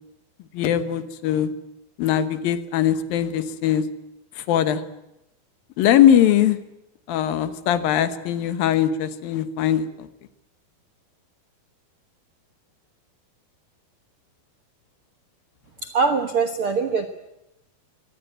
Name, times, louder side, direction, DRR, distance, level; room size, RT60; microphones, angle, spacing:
voice 1, 0.5-1.5 2.0-3.8 4.4-4.8 5.8-6.6 7.1-10.1, left 10 dB, 75° left, 12 dB, 2.9 m, -21 dB
voice 2, 15.8-17.1, right 5 dB, 65° right, 8 dB, 1.3 m, -22 dB
24.0 x 18.5 x 9.1 m, 0.90 s
omnidirectional pair, 4.3 m